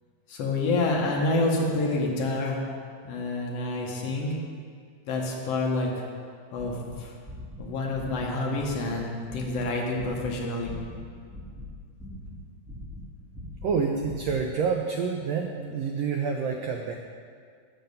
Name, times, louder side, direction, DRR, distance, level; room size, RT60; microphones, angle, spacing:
voice 1, 0.3-2.6 3.0-4.4 5.1-5.9 6.5-7.1 7.6-10.7, left 2 dB, 60° left, -1 dB, 1.9 m, -28 dB
sound 1, 6.6-9.0 9.3-9.7 9.9-11.0 11.3-12.4 12.6-14.4, left 1 dB, 5° left, 1.5 m, -41 dB
voice 2, 13.6-16.9, right 5 dB, 90° right, 2 dB, 1.4 m, -28 dB
8.0 x 6.9 x 5.4 m, 2.2 s
omnidirectional pair, 3.6 m